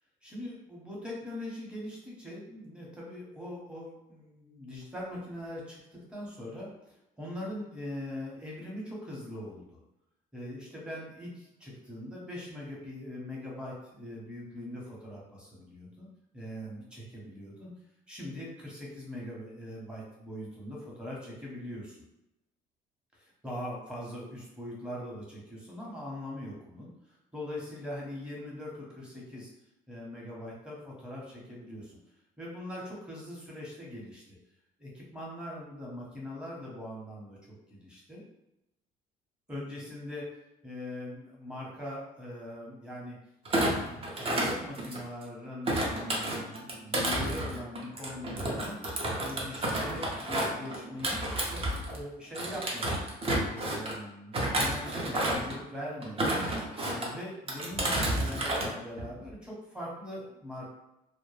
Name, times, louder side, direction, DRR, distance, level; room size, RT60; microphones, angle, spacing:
voice 1, 0.2-9.8 10.3-16.1 16.3-17.7 18.1-22.0 23.1-26.9 27.3-29.5 29.9-32.0 32.4-34.2 34.8-37.4 37.7-38.2 39.5-40.3 40.6-43.2 43.5-48.8 49.2-51.6 51.9-53.0 53.4-56.3 56.8-60.7, left 1 dB, 5° right, -4 dB, 0.9 m, -41 dB
Thump thud, 43.5-45.2 45.7-52.0 52.3-54.0 54.3-55.6 56.0-57.1 57.5-58.7 59.0-59.3, right 1 dB, 35° right, 0.6 m, -31 dB
2.1 x 2.1 x 3.1 m, 0.90 s
cardioid pair, 110°, 17 cm